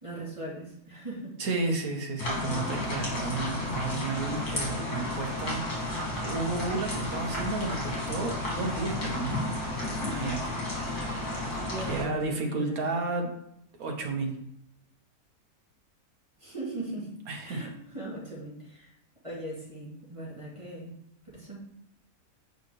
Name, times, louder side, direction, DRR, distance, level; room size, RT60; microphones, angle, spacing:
voice 1, 0.0-1.4 2.3-3.0 11.5-12.9 16.4-17.1 17.4-18.9 19.2-20.9 21.2-21.6, right 2 dB, 20° right, -6 dB, 2.2 m, -39 dB
voice 2, 1.4-9.6 10.1-11.4 11.9-13.3 13.8-14.4 17.3-17.7, right 3 dB, 65° right, 2 dB, 1.5 m, -33 dB
sound 1, 2.2-12.0, left 1 dB, 70° left, 2.6 m, -32 dB
7.9 x 5.5 x 3.1 m, 0.74 s
omnidirectional pair, 1.7 m